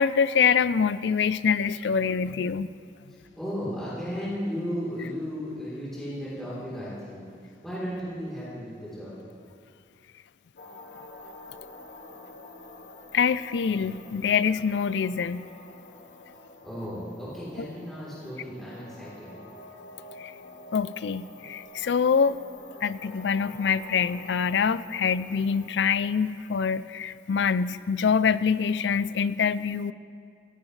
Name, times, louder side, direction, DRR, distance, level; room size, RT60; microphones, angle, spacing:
voice 1, 0.0-2.7 13.1-15.5 20.2-20.3 20.7-22.4 22.8-29.9, left 6 dB, 85° left, 16 dB, 0.4 m, -25 dB
voice 2, 3.1-9.1 16.6-19.3, equal, ahead, -10 dB, 3.6 m, -35 dB
sound 1, 10.6-26.9, left 2 dB, 65° left, 1.6 m, -48 dB
17.0 x 15.5 x 3.3 m, 2.4 s
head